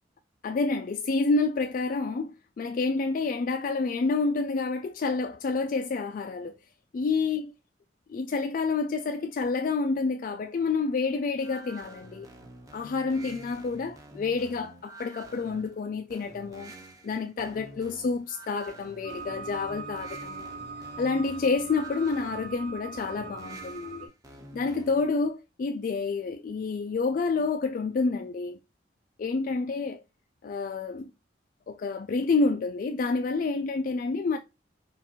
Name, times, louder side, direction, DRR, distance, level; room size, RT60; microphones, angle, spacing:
voice 1, 0.4-6.6 6.9-7.5 8.1-12.3 12.7-16.7 17.0-20.5 21.0-24.1 24.5-28.6 29.2-30.0 30.4-31.1 31.7-34.4, left 4 dB, 45° left, 0.3 m, -28 dB
sound 1, 11.4-25.2, right 1 dB, 20° right, 0.9 m, -48 dB
sound 2, 19.0-24.1, right 4 dB, 50° right, 1.8 m, -41 dB
6.5 x 2.5 x 2.9 m
head